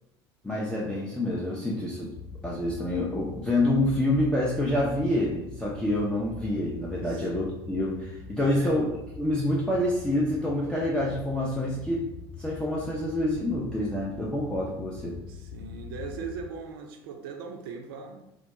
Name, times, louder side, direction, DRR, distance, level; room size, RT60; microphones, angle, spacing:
voice 1, 0.4-2.1 2.4-8.9 9.2-12.0 12.4-15.2, left 1 dB, 5° left, -5 dB, 0.4 m, -27 dB
sound 1, 2.1-16.5, left 5 dB, 60° left, 0.9 m, -43 dB
voice 2, 7.0-7.3 8.4-8.8 15.3-18.2, right 5 dB, 60° right, 4 dB, 0.4 m, -39 dB
2.3 x 2.1 x 2.8 m, 0.87 s
figure-of-eight pair, 65°, 14 cm